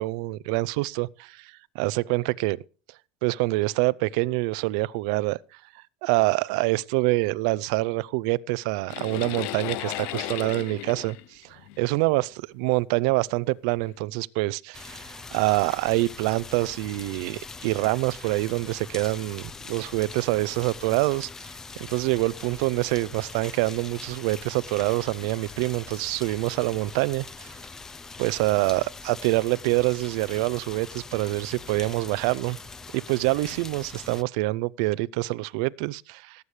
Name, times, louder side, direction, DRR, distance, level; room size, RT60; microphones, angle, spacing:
voice 1, 0.0-2.6 3.2-5.4 6.0-21.3 21.8-27.5 28.2-32.6 32.9-36.4, right 21 dB, 80° right, 0.5 m, -26 dB
sound 1, 8.9-12.2 13.1-13.2 13.8-13.9, left 14 dB, 65° left, 0.6 m, -35 dB
sound 2, 14.7-34.2, left 4 dB, 15° left, 0.5 m, -42 dB
18.0 x 8.1 x 3.3 m
cardioid pair, 165°, 3 cm